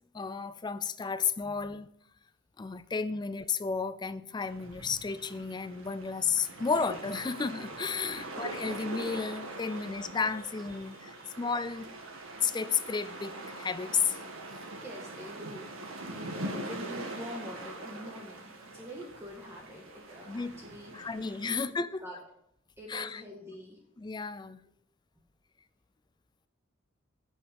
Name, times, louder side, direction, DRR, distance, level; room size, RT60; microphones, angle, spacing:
voice 1, 0.1-1.9 2.6-11.9 12.4-14.2 20.3-20.5 20.9-22.0 22.9-23.2 24.0-24.6, left 5 dB, 20° left, 15 dB, 0.4 m, -32 dB
sound 1, 4.4-21.6, right 2 dB, 85° right, 1.9 m, -43 dB
voice 2, 10.7-11.4 14.6-20.9 21.4-21.6 22.0-22.2 22.8-23.8, equal, 15° right, -2 dB, 1.6 m, -46 dB
10.5 x 6.4 x 5.2 m, 0.73 s
head